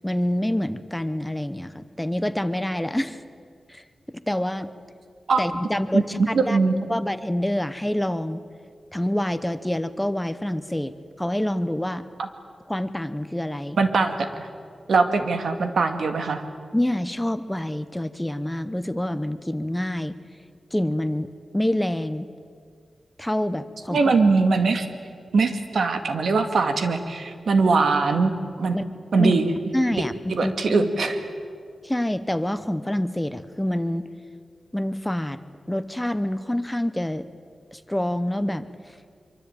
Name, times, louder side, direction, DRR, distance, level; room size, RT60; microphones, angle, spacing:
voice 1, 0.0-3.2 3.7-4.7 5.4-6.6 6.9-8.4 8.9-10.9 11.2-12.0 12.7-13.8 16.7-20.2 20.7-22.3 23.2-24.2 28.7-28.8 29.2-29.3 29.7-30.9 31.8-34.1 34.7-35.4 35.7-37.3 37.7-38.7, left 1 dB, 5° left, 13 dB, 0.8 m, -26 dB
voice 2, 5.9-6.7 12.2-12.3 13.8-14.3 14.9-16.4 23.9-24.9 25.3-28.3 28.6-28.8 29.1-29.5 29.9-30.0 30.3-31.2, right 4 dB, 75° right, 7 dB, 2.2 m, -21 dB
25.0 x 24.0 x 9.2 m, 2.2 s
wide cardioid pair, 145°, 0 cm